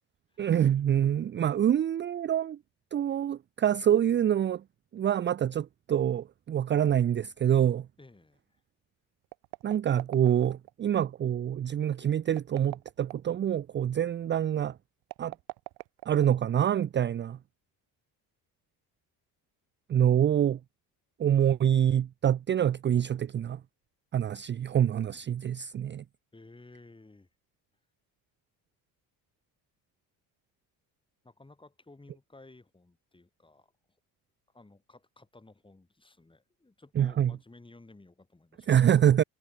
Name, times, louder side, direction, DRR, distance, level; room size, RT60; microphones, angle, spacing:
voice 1, 0.4-2.6 2.9-4.6 4.9-7.9 9.6-14.8 15.2-15.3 16.1-17.4 19.9-20.6 21.2-23.6 24.1-26.0 37.0-37.3 38.7-39.2, right 10 dB, 30° right, 0.5 m, -26 dB
voice 2, 8.0-8.6 26.3-27.3 31.2-33.7 34.5-38.7, left 2 dB, 15° left, 5.3 m, -55 dB
sound 1, 9.2-10.7 12.3-13.4 15.0-16.6, right 22 dB, 80° right, 1.3 m, -43 dB
cardioid pair, 105°, 39 cm